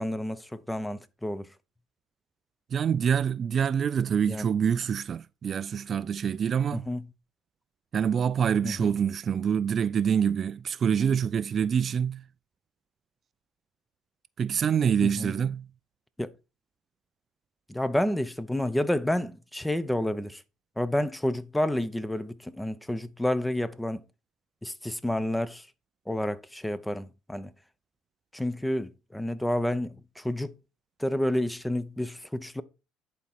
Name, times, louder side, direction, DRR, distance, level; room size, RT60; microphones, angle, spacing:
voice 1, 0.0-1.5 4.3-4.4 6.7-7.0 8.6-8.9 15.0-15.3 16.2-16.3 17.7-20.4 20.8-24.0 24.6-25.7 26.1-27.5 28.3-30.5 31.0-32.6, left 1 dB, 5° left, 0.7 m, -30 dB
voice 2, 2.7-6.9 7.9-12.2 14.4-15.7, right 7 dB, 45° right, 0.3 m, -26 dB
11.0 x 4.2 x 4.2 m
supercardioid pair, 85°, 0 cm